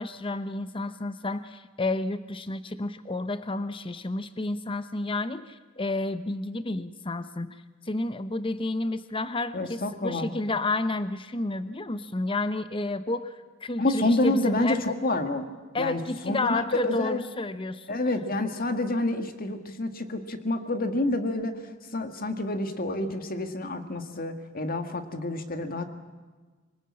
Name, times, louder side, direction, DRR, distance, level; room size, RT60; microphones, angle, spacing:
voice 1, 0.0-7.6 7.8-14.8 15.7-18.0, left 2 dB, 25° left, 12 dB, 0.9 m, -31 dB
voice 2, 9.5-10.3 13.8-15.5 15.8-17.2 17.9-25.8, left 2 dB, 45° left, 7 dB, 1.9 m, -28 dB
24.5 x 19.5 x 8.7 m, 1.4 s
head